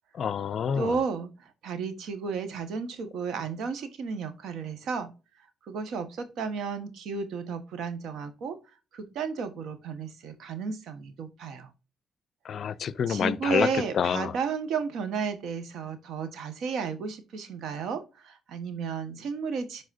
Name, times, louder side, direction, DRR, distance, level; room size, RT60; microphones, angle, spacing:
voice 1, 0.2-1.0 12.5-13.7 13.9-14.3, left 7 dB, 60° left, 0.5 m, -27 dB
voice 2, 0.8-5.1 5.6-8.6 8.9-11.7 13.1-19.8, right 5 dB, 75° right, 1.5 m, -33 dB
11.5 x 4.1 x 2.7 m
cardioid pair, 90°, 0 cm